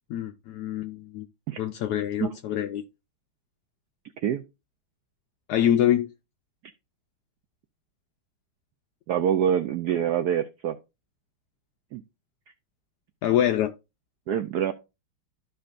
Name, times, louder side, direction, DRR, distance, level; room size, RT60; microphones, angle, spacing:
voice 1, 0.1-1.3 1.6-2.8 5.5-6.1 13.2-13.7, left 10 dB, 85° left, 0.9 m, -25 dB
voice 2, 9.1-10.7 11.9-12.0 14.3-14.7, right 9 dB, 85° right, 0.8 m, -25 dB
13.5 x 4.5 x 2.5 m
omnidirectional pair, 2.3 m